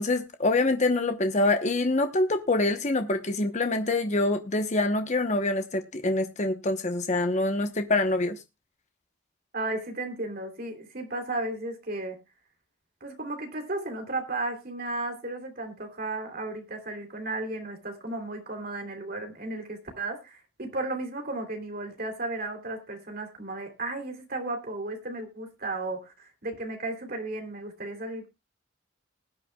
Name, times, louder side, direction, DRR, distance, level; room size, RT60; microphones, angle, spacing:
voice 1, 0.0-8.4, left 2 dB, 35° left, 1.0 m, -25 dB
voice 2, 9.5-12.2 13.0-28.3, right 2 dB, 50° right, 3.1 m, -34 dB
20.0 x 9.3 x 2.3 m
head